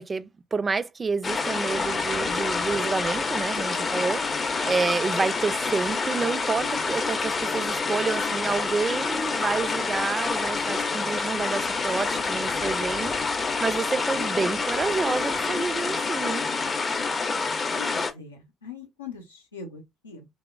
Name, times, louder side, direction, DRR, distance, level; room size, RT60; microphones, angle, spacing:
voice 1, 0.0-13.1 13.6-16.4, right 4 dB, 30° right, 0.3 m, -29 dB
sound 1, 1.2-18.1, left 4 dB, 35° left, 0.5 m, -27 dB
voice 2, 17.7-20.3, left 5 dB, 85° left, 0.5 m, -42 dB
3.0 x 2.0 x 2.2 m
figure-of-eight pair, 45°, 0 cm